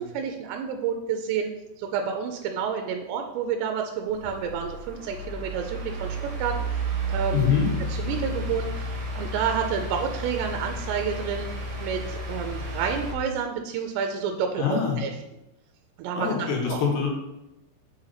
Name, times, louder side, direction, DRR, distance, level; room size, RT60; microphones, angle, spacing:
voice 1, 0.1-1.5 1.8-6.8 7.1-7.5 7.9-11.5 11.8-15.1 16.0-16.8, right 7 dB, 80° right, 4 dB, 2.7 m, -29 dB
sound 1, 4.1-13.1, right 1 dB, 60° right, 2.2 m, -32 dB
voice 2, 7.3-7.7 14.6-15.0 16.2-17.1, left 7 dB, 70° left, -1 dB, 3.3 m, -24 dB
6.3 x 5.5 x 4.0 m, 0.93 s
omnidirectional pair, 5.2 m